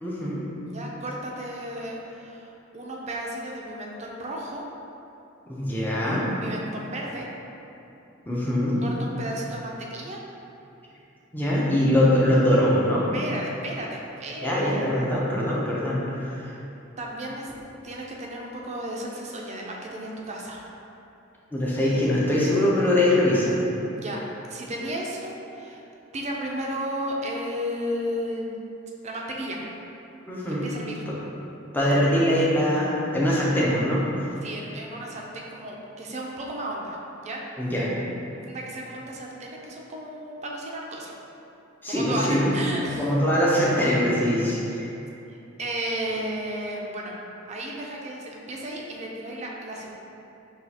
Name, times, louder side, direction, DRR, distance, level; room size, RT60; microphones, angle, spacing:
voice 1, 0.0-0.4 5.5-6.3 8.3-8.8 11.3-13.1 14.4-16.4 21.5-23.6 30.3-30.7 31.1-31.2 31.7-34.0 37.6-37.9 41.8-42.5 43.0-44.9, left 1 dB, 10° left, -6 dB, 0.6 m, -22 dB
voice 2, 0.7-4.6 6.4-7.3 8.8-10.2 13.1-15.2 17.0-17.5 17.8-20.6 24.0-24.2 24.5-25.8 26.1-28.6 29.0-29.6 30.5-31.0 34.4-37.4 38.3-41.1 41.9-43.1 45.3-47.2 47.5-49.9, right 1 dB, 35° right, -2 dB, 0.5 m, -34 dB
6.1 x 2.4 x 2.8 m, 2.8 s
head